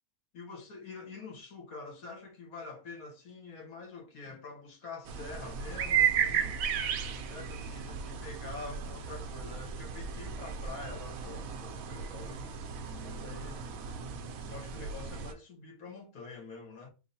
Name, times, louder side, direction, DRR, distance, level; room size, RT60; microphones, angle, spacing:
voice 1, 0.3-6.6 7.3-12.6 13.0-13.7 14.5-16.9, left 4 dB, 65° left, 1.6 m, -46 dB
sound 1, 5.1-15.3, right 7 dB, 70° right, 1.0 m, -34 dB
3.8 x 2.1 x 4.0 m
omnidirectional pair, 1.6 m